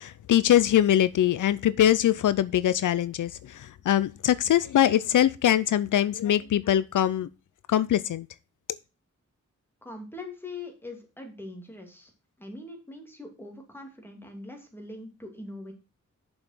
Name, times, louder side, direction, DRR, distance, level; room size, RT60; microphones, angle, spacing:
voice 1, 0.0-7.3 7.7-8.3, left 11 dB, 80° left, 0.5 m, -23 dB
voice 2, 9.8-12.1 12.4-15.7, left 2 dB, 5° left, 2.6 m, -42 dB
7.0 x 5.5 x 5.9 m
wide cardioid pair, 100°, 30 cm